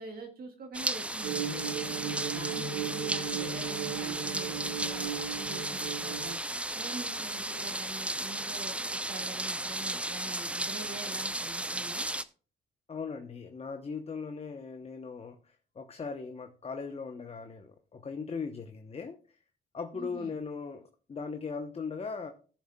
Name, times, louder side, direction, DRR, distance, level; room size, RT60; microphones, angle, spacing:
voice 1, 0.0-1.8 2.3-6.4 6.7-12.1 19.9-20.4, right 3 dB, 50° right, 3 dB, 1.6 m, -45 dB
sound 1, 0.7-12.2, right 1 dB, 5° right, 0.5 m, -35 dB
sound 2, 1.2-6.3, right 7 dB, 80° right, 1.6 m, -36 dB
voice 2, 12.9-19.2 19.7-22.3, left 5 dB, 30° left, 7 dB, 0.8 m, -39 dB
16.5 x 7.0 x 2.2 m, 0.40 s
cardioid pair, 90°, 20 cm